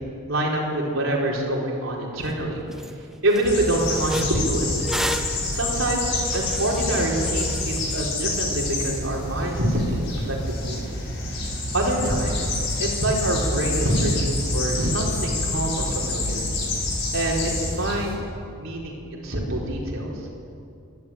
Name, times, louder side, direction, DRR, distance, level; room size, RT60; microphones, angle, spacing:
voice 1, 0.3-2.6 3.2-4.9 5.5-10.8 11.7-12.5 12.8-16.5 17.1-17.5 17.8-18.2 18.6-20.1, right 1 dB, 65° right, -2 dB, 4.6 m, -25 dB
sound 1, 2.3-2.4 2.7-2.9 3.3-8.0, equal, ahead, 0.8 m, -33 dB
sound 2, 3.4-18.1, left 2 dB, 55° left, 5.8 m, -28 dB
26.0 x 12.0 x 8.9 m, 2.5 s
head